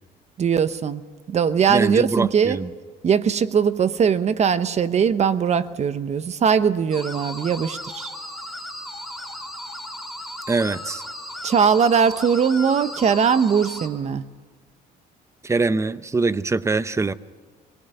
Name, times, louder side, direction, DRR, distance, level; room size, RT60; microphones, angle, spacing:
voice 1, 0.4-1.0 1.3-2.6 3.0-8.1 11.4-14.3, right 7 dB, 40° right, 1.0 m, -20 dB
voice 2, 1.7-2.7 10.5-11.0 15.4-17.1, right 3 dB, 15° right, 0.8 m, -23 dB
Creepy Ring Modulation (Hellraiser style), 6.9-13.9, left 1 dB, ahead, 3.5 m, -35 dB
25.5 x 19.5 x 6.8 m
cardioid pair, 110°, 17 cm